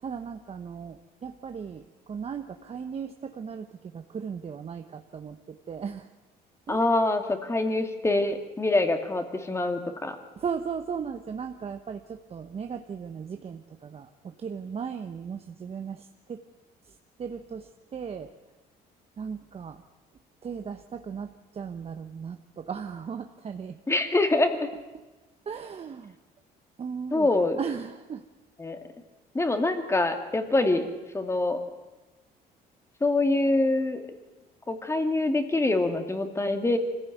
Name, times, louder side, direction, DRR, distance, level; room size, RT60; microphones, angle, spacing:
voice 1, 0.0-6.1 6.7-6.8 10.4-16.4 16.9-18.3 19.2-19.8 20.4-23.8 25.5-26.2 26.8-28.2, right 6 dB, 35° right, 6 dB, 1.1 m, -37 dB
voice 2, 6.7-10.2 23.9-24.7 27.1-27.6 28.6-28.8 29.3-30.9 31.1-31.6 33.0-34.0 34.7-36.8, left 2 dB, 15° left, 7 dB, 2.4 m, -25 dB
24.0 x 15.5 x 9.3 m, 1.2 s
cardioid pair, 110°, 17 cm